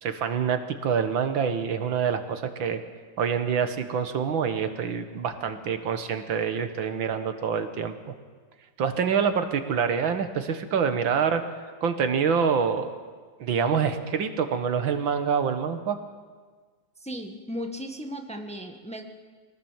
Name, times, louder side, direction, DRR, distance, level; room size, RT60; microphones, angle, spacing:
voice 1, 0.0-2.8 3.2-8.1 8.8-11.4 11.8-12.9 13.4-16.0, right 6 dB, 90° right, 8 dB, 2.2 m, -26 dB
voice 2, 17.0-19.0, equal, 5° left, 4 dB, 1.3 m, -36 dB
24.0 x 18.5 x 7.4 m, 1.5 s
omnidirectional pair, 2.1 m